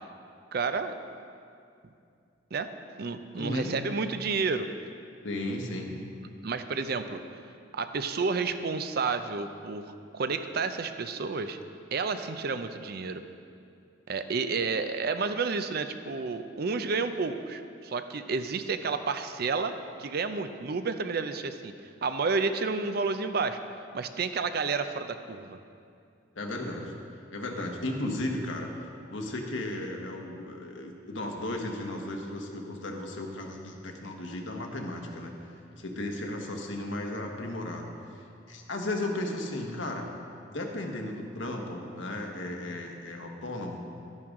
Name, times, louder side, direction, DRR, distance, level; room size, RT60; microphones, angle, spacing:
voice 1, 0.5-1.0 2.5-2.7 3.0-4.7 6.4-7.2 7.7-11.6 11.9-13.2 14.1-19.7 20.0-21.7 22.0-23.6 23.9-25.6, right 4 dB, 55° right, 9 dB, 0.5 m, -30 dB
voice 2, 3.4-3.7 5.2-6.0 26.3-26.9 27.3-28.7 29.1-35.5 35.8-40.1 40.5-43.8, left 1 dB, 80° left, 2 dB, 1.3 m, -35 dB
12.0 x 10.5 x 3.7 m, 2.4 s
head